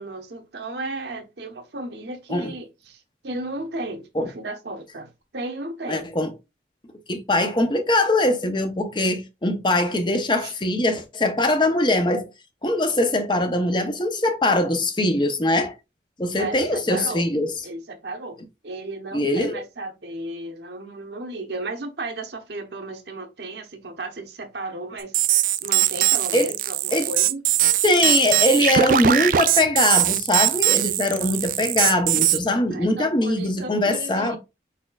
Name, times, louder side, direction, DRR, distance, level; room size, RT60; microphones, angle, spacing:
voice 1, 0.0-6.1 10.4-10.5 16.4-17.3 17.6-25.1 25.6-27.4 32.7-34.4, right 2 dB, 75° right, 0.9 m, -34 dB
voice 2, 5.9-6.3 7.1-12.3 12.6-15.7 16.2-17.5 19.1-19.6 26.3-26.5 26.9-27.1 27.8-34.4, left 1 dB, 25° left, 0.6 m, -22 dB
sound 1, 25.1-32.4, right 12 dB, 45° right, 0.3 m, -21 dB
5.0 x 4.2 x 2.3 m
head